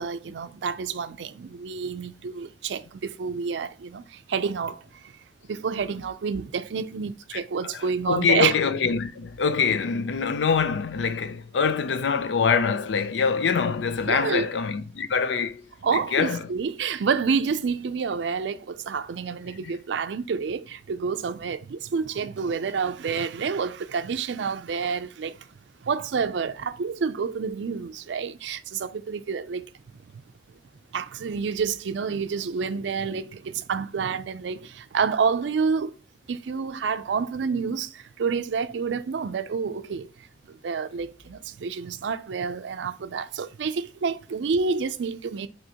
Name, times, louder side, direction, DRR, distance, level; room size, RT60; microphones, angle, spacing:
voice 1, 0.0-4.8 5.5-8.5 14.1-14.5 15.8-25.4 25.8-29.7 30.9-35.9 36.3-40.1 40.5-45.5, right 5 dB, 90° right, 0.4 m, -28 dB
voice 2, 7.3-15.6 15.9-16.5 19.6-19.7, left 5 dB, 90° left, 0.5 m, -25 dB
6.1 x 3.0 x 2.9 m
head